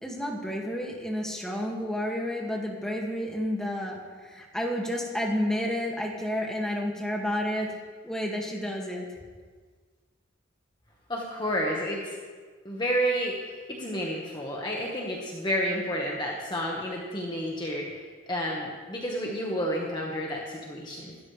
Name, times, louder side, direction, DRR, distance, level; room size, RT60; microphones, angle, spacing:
voice 1, 0.0-7.8 8.0-9.1, equal, 5° left, -2 dB, 2.2 m, -30 dB
voice 2, 11.1-12.2 12.6-21.1, equal, 20° left, -2 dB, 1.6 m, -30 dB
26.5 x 13.0 x 3.4 m, 1.5 s
head